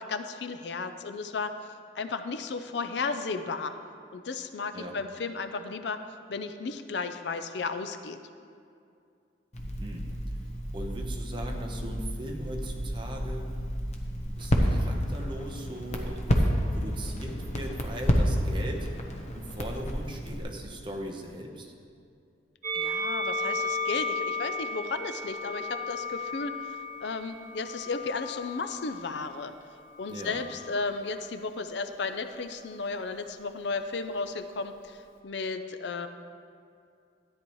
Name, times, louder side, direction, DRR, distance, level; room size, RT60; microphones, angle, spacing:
voice 1, 0.0-1.6 1.9-3.7 4.1-8.2 22.7-29.5 30.0-36.1, left 4 dB, 70° left, 9 dB, 0.5 m, -34 dB
Crackle, 9.5-20.4, equal, 35° left, 0.9 m, -30 dB
voice 2, 9.6-10.1 10.7-13.5 14.2-16.4 16.8-18.9 19.3-21.7 30.1-30.5, equal, 25° right, 1 dB, 1.0 m, -39 dB
Musical instrument, 22.6-29.0 29.9-30.9, left 2 dB, 50° right, 1.3 m, -34 dB
13.0 x 10.0 x 3.1 m, 2.4 s
head